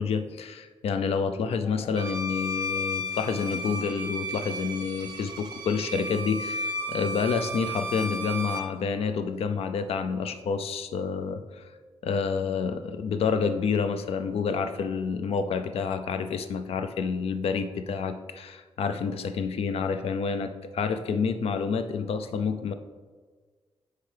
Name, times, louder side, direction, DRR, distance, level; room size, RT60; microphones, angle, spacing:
voice 1, 0.0-11.6 12.0-22.7, left 5 dB, 85° left, 9 dB, 0.4 m, -28 dB
Bowed string instrument, 2.0-8.7, equal, 45° right, 0.7 m, -34 dB
7.8 x 4.6 x 3.4 m, 1.5 s
wide cardioid pair, 135°, 10 cm